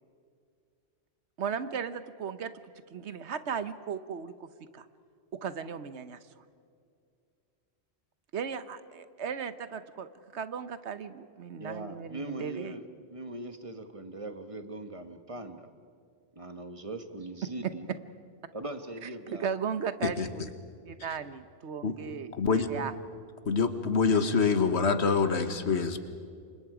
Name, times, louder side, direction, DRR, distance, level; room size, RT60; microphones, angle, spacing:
voice 1, 1.4-2.5 2.9-4.5 4.7-4.9 5.4-6.2 8.3-12.8 19.0-20.4 20.9-22.9, right 7 dB, 85° right, 12 dB, 1.2 m, -36 dB
voice 2, 11.6-15.7 16.3-17.9 18.5-19.5, right 2 dB, 30° right, 7 dB, 1.4 m, -40 dB
voice 3, 22.3-22.7 23.5-26.0, left 5 dB, 80° left, 9 dB, 1.6 m, -26 dB
29.0 x 25.0 x 5.0 m, 2.3 s
omnidirectional pair, 1.1 m